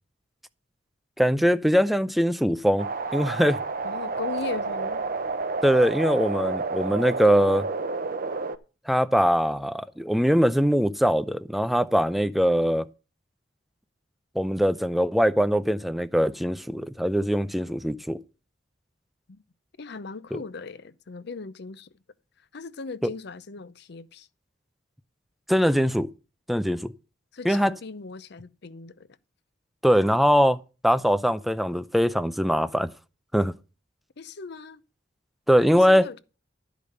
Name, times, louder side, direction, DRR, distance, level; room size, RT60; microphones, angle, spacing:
voice 1, 1.2-2.9 3.1-3.6 5.6-7.7 8.9-12.9 14.4-18.2 20.3-20.4 23.0-23.1 25.5-26.1 26.5-26.9 27.4-27.7 29.8-32.9 33.3-33.5 35.5-36.1, equal, ahead, 0.5 m, -22 dB
sound 1, 2.8-8.6, right 4 dB, 50° right, 0.8 m, -30 dB
voice 2, 3.8-5.0 19.3-19.4 19.8-21.9 22.5-24.3 27.3-29.1 31.1-31.2 34.2-34.8 35.7-36.2, left 4 dB, 65° left, 0.6 m, -38 dB
12.5 x 5.1 x 6.6 m
head